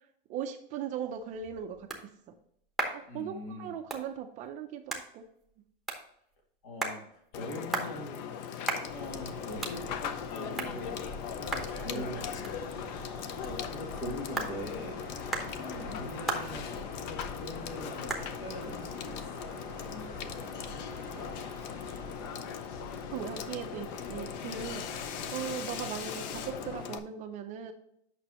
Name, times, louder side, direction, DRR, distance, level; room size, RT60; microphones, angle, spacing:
voice 1, 0.3-2.1 2.9-5.2 11.9-12.1 22.2-22.4 23.1-24.8 25.3-27.7, right 8 dB, 25° right, 6 dB, 0.5 m, -39 dB
sound 1, 1.0-20.3, right 3 dB, ahead, 0.8 m, -41 dB
voice 2, 3.1-3.7 6.6-8.5 8.9-12.4 13.4-15.0 15.5-21.3, left 1 dB, 70° left, 1 dB, 2.7 m, -43 dB
Water / Water tap faucet / Sink (filling or washing), 7.3-27.0, left 8 dB, 50° left, 0.7 m, -40 dB
sound 2, 8.9-26.8, left 2 dB, 30° left, 1.7 m, -44 dB
8.7 x 5.9 x 2.9 m, 0.73 s
supercardioid pair, 160°, 29 cm